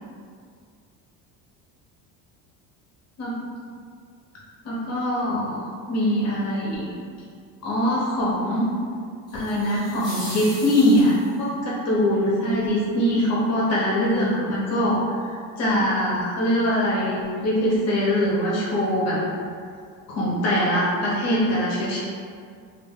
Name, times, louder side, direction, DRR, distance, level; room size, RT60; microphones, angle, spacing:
voice 1, 4.6-5.6 5.9-6.9 7.6-8.7 9.3-19.2 20.1-22.0, equal, 40° left, -6 dB, 0.6 m, -22 dB
sound 1, 9.3-11.5, left 1 dB, 10° left, 0.8 m, -38 dB
2.2 x 2.0 x 3.4 m, 2.2 s
cardioid pair, 155°, 39 cm